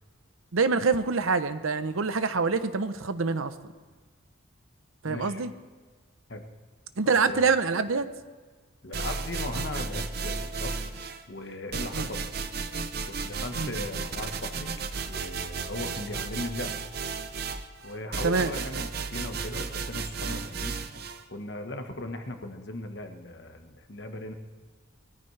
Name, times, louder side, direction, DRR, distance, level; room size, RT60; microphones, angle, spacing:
voice 1, 0.5-3.5 5.0-5.5 7.0-8.1 11.9-12.1 13.6-13.7 18.2-18.5, right 4 dB, 85° right, 11 dB, 0.8 m, -25 dB
voice 2, 5.0-5.4 6.3-6.4 7.0-7.5 8.8-10.7 11.3-12.2 13.1-14.7 15.1-16.7 17.8-20.8 21.3-24.3, left 1 dB, 55° left, 5 dB, 1.3 m, -38 dB
sound 1, 8.9-11.2 11.7-21.2, right 4 dB, 50° right, 0.7 m, -34 dB
21.5 x 14.0 x 3.3 m, 1.4 s
head